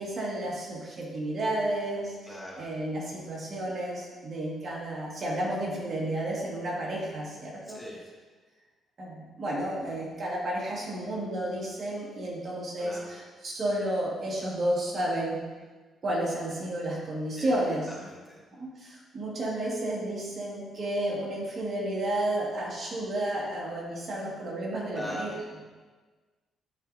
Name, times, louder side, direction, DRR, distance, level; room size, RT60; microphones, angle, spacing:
voice 1, 0.0-7.8 9.0-15.4 16.0-17.9 18.6-25.3, right 1 dB, 45° right, -4 dB, 1.8 m, -32 dB
voice 2, 2.2-2.7 7.6-8.0 12.8-13.1 17.4-17.5 17.9-18.4 24.9-25.4, left 1 dB, 15° left, -5 dB, 1.7 m, -41 dB
10.5 x 4.4 x 2.7 m, 1.4 s
cardioid pair, 90°, 0 cm